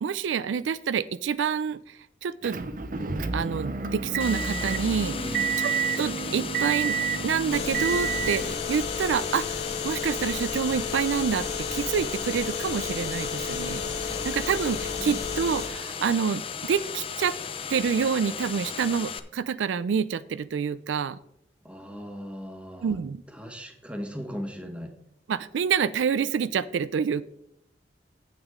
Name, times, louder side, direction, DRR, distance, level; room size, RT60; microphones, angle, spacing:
voice 1, 0.0-2.6 3.3-5.4 5.6-5.7 6.0-7.0 7.2-13.8 14.2-17.3 17.7-21.2 22.8-23.2 25.3-27.2, right 6 dB, 90° right, 16 dB, 0.4 m, -27 dB
Motor vehicle (road) / Engine, 2.4-8.5, right 6 dB, 45° right, 0.6 m, -29 dB
sound 1, 4.2-19.2, left 6 dB, 30° left, 0.5 m, -36 dB
voice 2, 5.1-5.6 14.1-14.3 15.0-15.3 21.6-23.0 23.3-24.9, equal, 5° right, 5 dB, 1.1 m, -38 dB
sound 2, 7.5-15.7, left 6 dB, 60° left, 1.5 m, -33 dB
9.4 x 8.2 x 3.6 m, 0.77 s
head